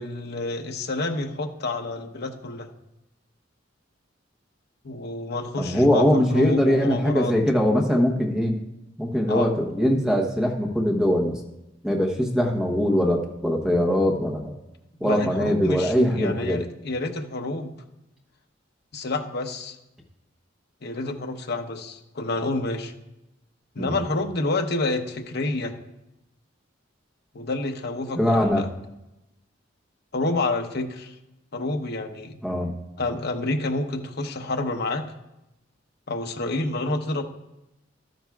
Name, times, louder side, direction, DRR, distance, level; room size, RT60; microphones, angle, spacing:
voice 1, 0.0-2.7 4.8-7.4 9.3-9.5 15.0-17.8 18.9-19.8 20.8-22.9 23.7-25.7 27.3-28.7 30.1-31.1 31.5-32.3 33.0-35.1 36.1-37.2, left 2 dB, 55° left, 4 dB, 0.9 m, -28 dB
voice 2, 5.6-8.6 9.0-11.4 11.8-14.5 15.0-16.6 23.8-24.0 28.1-28.6 32.4-32.7, equal, 5° right, 1 dB, 0.9 m, -22 dB
13.0 x 10.5 x 2.4 m, 0.94 s
head